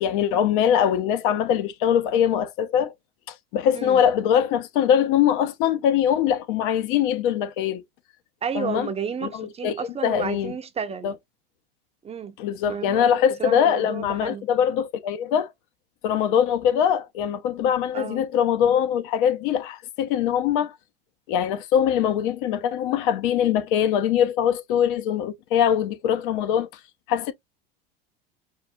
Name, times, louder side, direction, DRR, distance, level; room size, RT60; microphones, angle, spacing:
voice 1, 0.0-2.9 3.5-7.8 8.5-8.9 9.2-9.7 10.0-10.5 11.0-11.1 12.4-15.5 16.0-20.7 21.3-26.7 27.1-27.3, left 9 dB, 60° left, 0.7 m, -22 dB
voice 2, 8.4-11.1 12.0-12.4 12.6-14.5 17.9-18.2, right 7 dB, 20° right, 0.6 m, -32 dB
4.7 x 2.4 x 2.6 m
hypercardioid pair, 85°, 30 cm